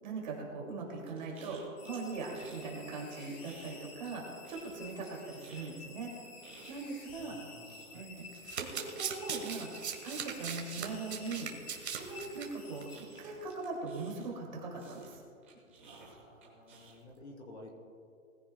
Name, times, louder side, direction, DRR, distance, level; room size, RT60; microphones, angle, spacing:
voice 1, 0.0-6.1 6.7-7.3 7.9-8.3 8.6-9.7 10.0-11.5 11.8-12.9 13.2-15.1, right 3 dB, 30° right, -1 dB, 2.4 m, -40 dB
sound 1, 1.1-2.7 3.0-4.2 4.4-14.4 14.8-17.2, right 4 dB, 10° right, 0.8 m, -56 dB
sound 2, 1.8-13.6, left 4 dB, 80° left, 2.9 m, -52 dB
voice 2, 7.2-8.4 15.8-17.7, left 1 dB, 50° left, 1 dB, 3.1 m, -53 dB
Domestic sounds home sounds, 8.2-12.5 12.8-13.0 13.2-13.3, right 7 dB, 50° right, 1.7 m, -39 dB
20.5 x 15.5 x 2.2 m, 2.4 s
hypercardioid pair, 175°, 42 cm